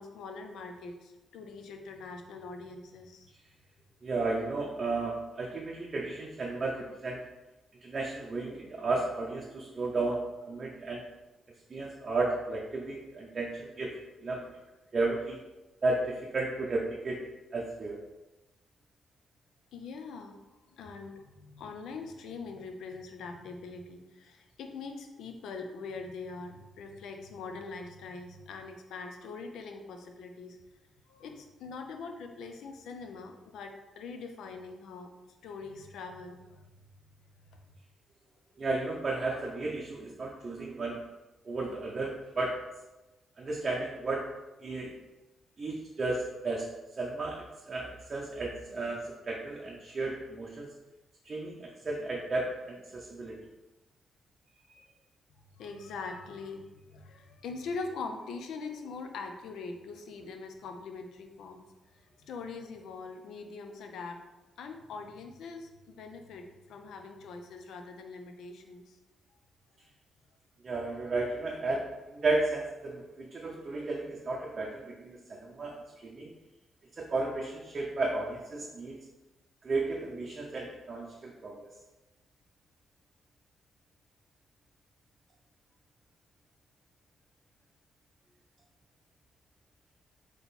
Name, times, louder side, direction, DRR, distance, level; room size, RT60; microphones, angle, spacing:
voice 1, 0.0-3.3 19.7-20.3 20.7-30.6 31.1-35.1 35.4-36.7 37.5-37.6 55.5-61.7 61.9-64.2 64.6-69.0, left 4 dB, 85° left, 5 dB, 0.5 m, -43 dB
voice 2, 4.0-7.2 7.8-11.0 11.7-14.4 14.9-15.4 15.8-17.2 17.5-18.0 38.6-41.0 41.5-42.6 43.4-44.3 44.6-44.9 45.6-46.7 47.0-50.7 51.2-53.4 54.7-54.8 70.6-76.3 77.0-79.0 79.6-81.7, right 3 dB, 35° right, -2 dB, 0.6 m, -33 dB
3.8 x 2.9 x 4.0 m, 1.1 s
cardioid pair, 120°, 0 cm